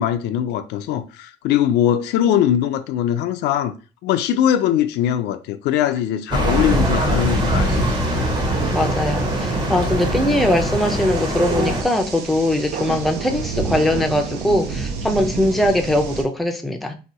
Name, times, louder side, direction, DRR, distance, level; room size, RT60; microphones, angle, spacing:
voice 1, 0.0-3.7 4.0-8.3, left 10 dB, 80° left, 0.4 m, -21 dB
sound 1, 6.3-11.8, right 1 dB, 25° right, 0.8 m, -22 dB
sound 2, 6.5-16.2, right 5 dB, 80° right, 0.6 m, -30 dB
voice 2, 8.7-16.9, left 1 dB, ahead, 0.4 m, -21 dB
2.7 x 2.3 x 4.0 m
cardioid pair, 110°, 17 cm